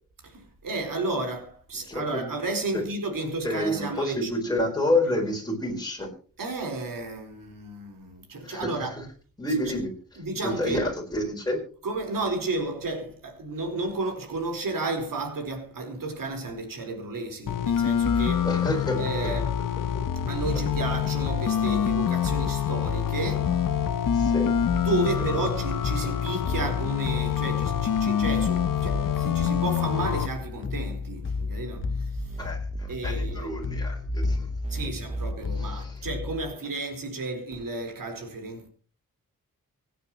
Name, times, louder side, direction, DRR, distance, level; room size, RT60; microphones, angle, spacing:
voice 1, 0.2-4.3 6.4-9.0 10.2-10.8 11.8-18.5 19.0-19.5 20.2-23.6 24.8-32.4 32.9-33.5 34.7-38.7, right 2 dB, 70° right, 4.5 m, -32 dB
voice 2, 1.9-2.3 2.7-2.8 3.2-6.1 8.4-8.9 9.4-9.9 10.4-11.6 18.4-19.0 24.1-24.6 26.0-26.1 32.4-34.5 34.8-34.9 35.5-36.0, left 1 dB, 10° left, 4.5 m, -29 dB
sound 1, 17.5-30.3, left 9 dB, 70° left, 0.8 m, -26 dB
sound 2, 17.5-36.5, left 4 dB, 35° left, 0.9 m, -34 dB
sound 3, 20.1-22.0 23.9-25.8 27.7-29.6 31.5-35.3, right 3 dB, 20° right, 0.9 m, -37 dB
25.5 x 9.3 x 3.0 m
wide cardioid pair, 145°, 34 cm